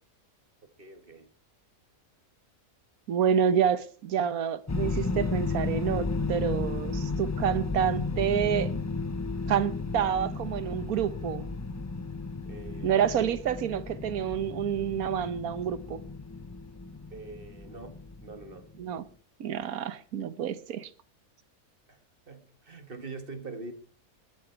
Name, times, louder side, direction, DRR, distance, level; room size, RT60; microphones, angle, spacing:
voice 1, 0.8-1.3 12.4-13.3 17.1-18.7 21.9-22.0 22.3-23.7, right 3 dB, 40° right, 1.9 m, -44 dB
voice 2, 3.1-8.7 9.5-11.4 12.8-16.0 18.8-19.0 19.4-20.9, right 8 dB, 80° right, 1.4 m, -28 dB
sound 1, 4.7-18.7, left 3 dB, 25° left, 0.4 m, -33 dB
20.5 x 9.3 x 4.6 m
omnidirectional pair, 1.5 m